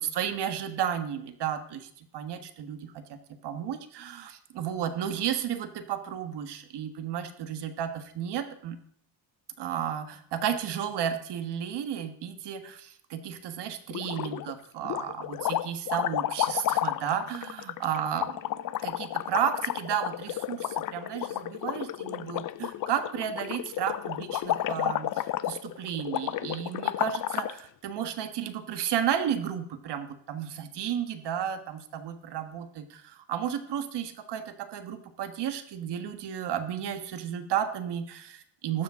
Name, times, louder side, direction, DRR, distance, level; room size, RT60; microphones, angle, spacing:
voice 1, 0.0-3.2 3.4-8.8 9.6-18.3 18.8-38.8, right 9 dB, 70° right, 8 dB, 1.5 m, -33 dB
sound 1, 13.9-14.5 14.8-27.6, left 13 dB, 50° left, 0.5 m, -32 dB
14.5 x 12.0 x 3.7 m, 0.64 s
cardioid pair, 175°, 42 cm